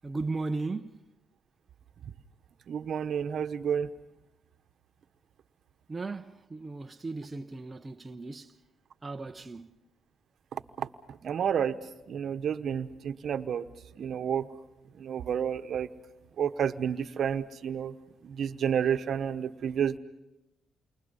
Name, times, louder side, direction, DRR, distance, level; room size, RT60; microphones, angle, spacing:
voice 1, 0.0-1.0 5.9-8.6 9.0-9.8, right 3 dB, 25° right, 0.8 m, -36 dB
voice 2, 2.7-3.9 10.5-11.7 12.1-13.6 14.0-14.5 15.0-15.9 16.4-17.9 18.2-20.0, right 8 dB, 60° right, 1.1 m, -30 dB
29.0 x 24.0 x 5.5 m
cardioid pair, 90°, 0 cm